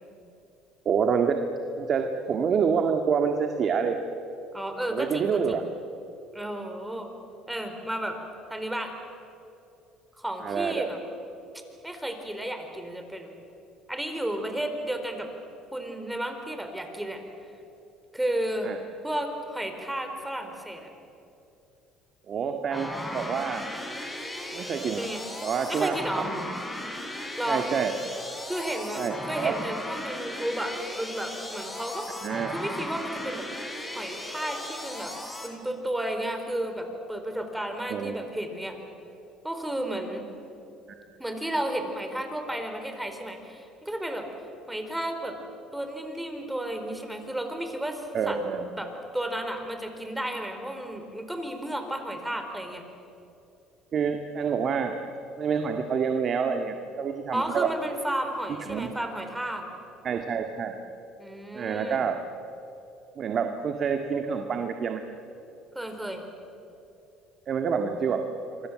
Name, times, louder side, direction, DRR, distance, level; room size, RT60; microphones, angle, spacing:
voice 1, 0.9-1.4 1.8-4.0 4.9-5.6 10.4-10.9 18.6-18.8 22.3-23.6 24.5-25.0 25.4-26.6 27.5-27.9 29.0-29.5 32.2-32.5 37.9-38.1 48.1-48.7 53.9-55.0 55.4-57.7 58.7-58.9 60.0-60.7 61.5-62.2 63.2-65.0 67.5-68.2, right 6 dB, 50° right, 5 dB, 1.9 m, -27 dB
voice 2, 4.5-5.6 6.3-7.1 7.5-8.2 8.5-8.9 10.2-11.0 11.8-13.3 13.9-15.3 15.7-17.2 18.1-18.7 19.0-20.9 25.0-25.2 25.7-26.3 27.4-27.7 28.5-32.1 32.5-33.5 33.9-35.1 35.4-38.8 39.4-40.3 41.2-44.3 44.7-45.4 45.7-48.4 48.8-52.8 57.3-59.6 61.2-62.1 65.7-66.2, right 1 dB, 5° right, 5 dB, 4.6 m, -33 dB
sound 1, 22.7-35.5, left 1 dB, 15° left, 5.4 m, -36 dB
28.0 x 24.0 x 7.7 m, 2.8 s
supercardioid pair, 80°, 0 cm